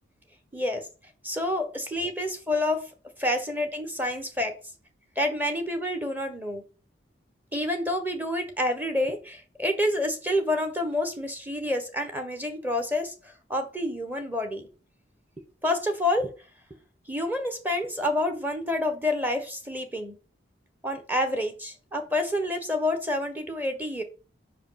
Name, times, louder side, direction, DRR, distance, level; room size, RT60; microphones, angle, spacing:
voice 1, 0.5-0.9 1.2-2.9 3.2-4.5 5.2-6.6 7.5-14.7 15.6-16.3 17.1-20.1 20.8-24.0, left 1 dB, 10° right, 5 dB, 1.2 m, -28 dB
5.6 x 5.0 x 5.8 m, 0.34 s
head